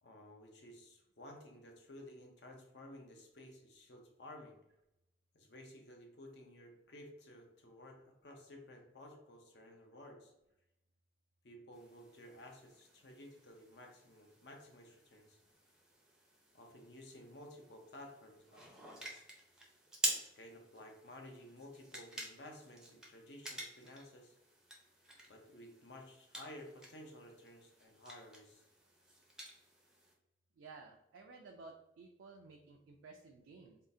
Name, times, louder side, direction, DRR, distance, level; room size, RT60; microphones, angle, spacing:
voice 1, 0.0-4.6 5.3-10.3 11.4-15.4 16.5-19.2 20.2-24.4 25.3-28.7, left 1 dB, 65° left, 2 dB, 0.6 m, -54 dB
sound 1, 11.7-30.1, right 1 dB, 5° right, 0.5 m, -48 dB
voice 2, 30.6-33.8, right 3 dB, 90° right, 2 dB, 0.4 m, -55 dB
3.7 x 2.4 x 2.6 m, 0.85 s
head